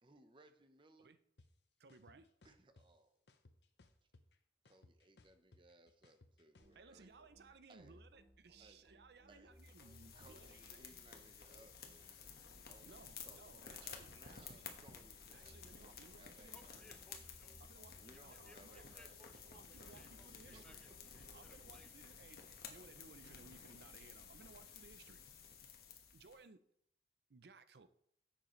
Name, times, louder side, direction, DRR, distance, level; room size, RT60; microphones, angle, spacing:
voice 1, 0.0-1.2 2.4-3.2 4.6-8.0 8.6-9.5 10.1-12.2 12.7-16.8 18.0-19.2 20.5-20.6, right 2 dB, 30° right, 8 dB, 0.8 m, -65 dB
sound 1, 1.4-1.5 1.9-2.9 3.3-4.3 4.6-6.7, left 2 dB, 75° left, 0.8 m, -65 dB
voice 2, 1.8-2.3 6.7-10.8 12.9-14.4 15.3-16.9 17.6-18.9 19.5-20.8 21.3-25.2 26.1-26.6 27.3-27.9, right 4 dB, 65° right, 12 dB, 0.5 m, -62 dB
sound 2, 6.6-21.8, equal, 45° right, 4.2 m, -66 dB
sound 3, 9.6-26.4, left 6 dB, 60° left, 1.2 m, -55 dB
voice 3, 16.5-17.5 18.1-22.2, left 1 dB, 5° left, 7 dB, 0.6 m, -66 dB
10.5 x 7.5 x 3.1 m, 0.69 s
head